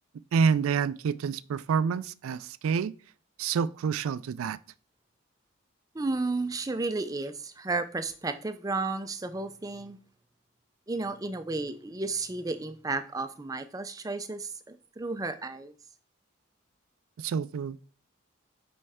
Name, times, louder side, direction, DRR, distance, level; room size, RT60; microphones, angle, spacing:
voice 1, 0.3-2.9 3.4-4.6 17.2-17.8, right 6 dB, 85° right, 0.3 m, -28 dB
voice 2, 5.9-10.0 10.9-15.7, right 3 dB, 15° right, 0.4 m, -33 dB
5.4 x 5.3 x 3.5 m
head